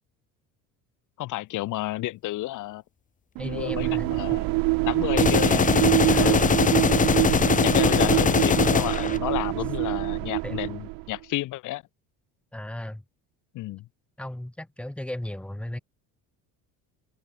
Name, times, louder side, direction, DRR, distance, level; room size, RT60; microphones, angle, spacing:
voice 1, 1.2-2.8 3.5-4.4 4.9-5.7 6.2-6.4 7.6-11.8 13.5-13.8, left 17 dB, 60° left, 2.5 m, -31 dB
voice 2, 3.4-4.0 6.1-6.6 10.4-10.5 12.5-13.0 14.2-15.8, left 1 dB, 5° left, 3.4 m, -35 dB
sound 1, 3.4-11.2, right 25 dB, 80° right, 2.2 m, -25 dB
sound 2, 5.2-9.2, left 6 dB, 25° left, 1.1 m, -21 dB
open air
cardioid pair, 135°, 34 cm